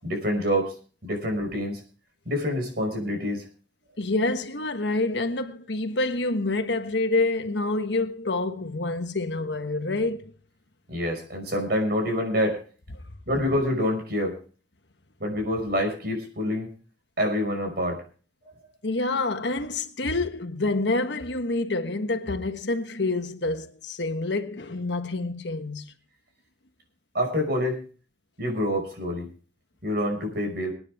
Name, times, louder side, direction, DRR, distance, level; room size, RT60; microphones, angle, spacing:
voice 1, 0.0-0.7 1.0-1.8 2.3-3.5 10.9-12.6 13.3-14.4 15.2-16.7 17.2-18.0 27.1-27.8 28.4-29.3 29.8-30.7, equal, 60° right, 5.6 m, -26 dB
voice 2, 4.0-10.3 18.8-25.9, left 2 dB, 70° left, 1.4 m, -27 dB
25.0 x 9.6 x 3.6 m
head